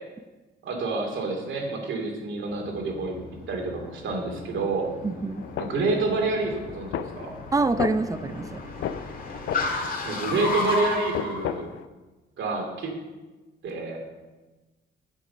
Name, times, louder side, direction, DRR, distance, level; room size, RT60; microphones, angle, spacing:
voice 1, 0.6-3.2 3.5-4.9 5.6-7.3 10.0-11.7 12.4-12.9 13.6-14.0, right 3 dB, 75° right, 2 dB, 2.5 m, -28 dB
Car, 2.5-11.4, left 2 dB, 45° left, 2.2 m, -34 dB
voice 2, 5.0-5.4 7.5-8.6, right 3 dB, 15° right, 12 dB, 0.6 m, -26 dB
sound 1, 5.4-11.9, left 9 dB, 75° left, 0.6 m, -36 dB
9.8 x 7.7 x 5.6 m, 1.2 s
cardioid pair, 90°, 20 cm